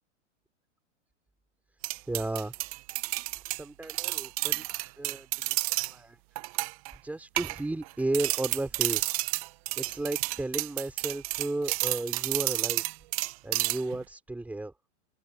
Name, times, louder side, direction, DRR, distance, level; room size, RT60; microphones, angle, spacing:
sound 1, 1.8-5.9 6.4-6.9 7.4-7.9 8.1-14.0, right 22 dB, 30° right, 0.6 m, -31 dB
voice 1, 2.0-2.6 3.5-6.2 7.0-9.2 9.8-12.8 13.1-14.7, right 2 dB, 5° right, 3.0 m, -34 dB
hypercardioid pair, 150°, 37 cm